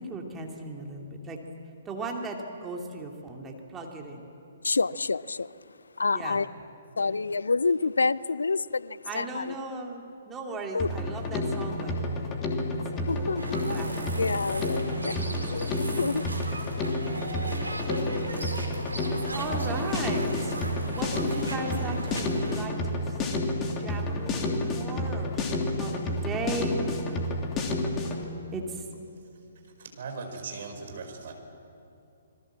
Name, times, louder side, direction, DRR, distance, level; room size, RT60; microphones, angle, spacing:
voice 1, 0.0-1.4 1.9-4.2 6.1-6.4 7.0-7.1 9.1-12.3 12.9-13.9 15.1-15.7 19.3-20.6 20.8-23.0 23.8-26.8 28.5-28.6, right 3 dB, 15° right, 2.7 m, -37 dB
voice 2, 4.6-5.5 6.0-6.5 7.0-9.6 10.7-10.9 13.1-13.4 14.1-15.1 15.5-16.3, left 4 dB, 70° left, 0.5 m, -28 dB
Drum kit, 10.8-28.2, left 2 dB, 20° left, 2.9 m, -30 dB
sound 1, 13.4-22.7, right 1 dB, 80° right, 3.8 m, -36 dB
voice 3, 29.6-31.3, right 4 dB, 50° right, 5.0 m, -39 dB
27.0 x 21.5 x 7.6 m
figure-of-eight pair, 125°, 0 cm